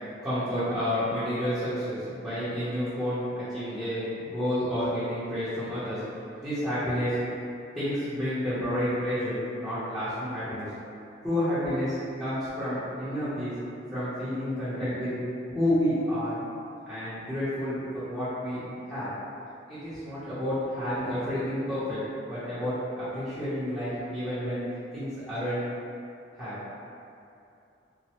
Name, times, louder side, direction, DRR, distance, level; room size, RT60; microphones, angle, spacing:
voice 1, 0.2-6.0 6.4-7.2 7.7-10.7 11.2-13.5 13.9-15.1 15.5-16.4 16.9-19.1 19.7-22.0 22.3-24.6 24.9-25.6 26.4-26.6, equal, ahead, -16 dB, 0.7 m, -30 dB
3.0 x 2.0 x 2.8 m, 2.7 s
head